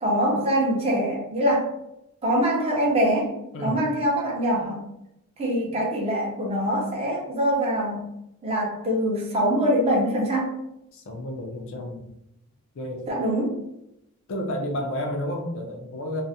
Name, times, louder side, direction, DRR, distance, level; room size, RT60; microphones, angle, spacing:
voice 1, 0.0-1.7 2.2-3.3 3.6-4.8 5.4-8.1 8.4-10.5 13.1-13.5, equal, 30° right, -3 dB, 0.5 m, -23 dB
voice 2, 3.5-3.9 5.7-5.8 10.9-12.0 12.7-13.0 14.3-16.2, left 1 dB, 60° left, 2 dB, 0.5 m, -31 dB
2.4 x 2.0 x 2.7 m, 0.82 s
head